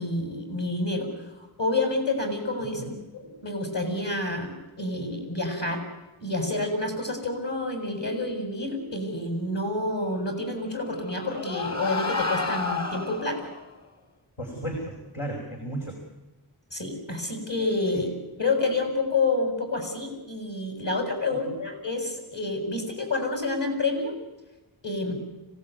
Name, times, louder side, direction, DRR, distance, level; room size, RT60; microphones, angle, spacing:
voice 1, 0.0-2.9 3.1-5.8 6.2-13.4 16.7-18.1 18.4-24.1 24.8-25.1, left 2 dB, 60° left, 4 dB, 7.2 m, -28 dB
sound 1, 10.7-13.7, left 4 dB, 35° left, 1.6 m, -31 dB
voice 2, 14.4-16.0 17.9-18.0 21.5-21.6 25.1-25.2, right 1 dB, 85° left, -1 dB, 5.2 m, -34 dB
25.5 x 18.0 x 9.4 m, 1.0 s
wide cardioid pair, 55°, 49 cm